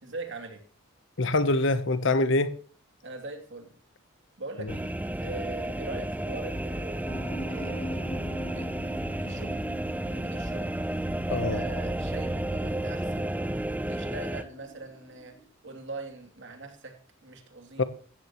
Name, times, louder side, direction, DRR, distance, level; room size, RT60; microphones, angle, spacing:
voice 1, 0.0-0.6 3.0-3.7 4.4-4.9 5.2-7.1 7.4-8.1 8.5-9.6 10.1-10.7 11.3-13.3 13.9-15.3 15.6-16.9 17.2-17.8, right 2 dB, 60° right, 2.9 m, -41 dB
voice 2, 1.2-2.5 4.6-4.7 11.3-11.6 17.8-17.9, left 2 dB, 60° left, 1.0 m, -25 dB
sound 1, 4.7-14.4, right 1 dB, 10° right, 0.5 m, -32 dB
sound 2, 7.1-15.4, equal, 25° left, 4.1 m, -43 dB
16.5 x 13.5 x 3.1 m
head